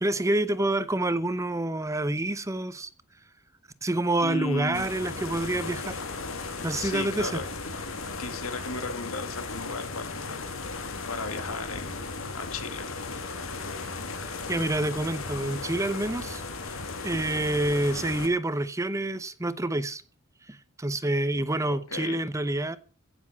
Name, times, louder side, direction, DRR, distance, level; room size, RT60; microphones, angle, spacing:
voice 1, 0.0-2.9 3.8-6.0 6.6-7.4 14.2-16.4 17.0-20.0 20.5-22.8, right 1 dB, 15° right, 0.8 m, -27 dB
voice 2, 4.2-4.9 6.7-7.5 8.2-10.4 11.1-12.9 21.6-22.2, left 3 dB, 85° left, 2.2 m, -36 dB
sound 1, 4.7-18.3, left 3 dB, 70° left, 2.1 m, -36 dB
16.0 x 7.1 x 7.2 m
head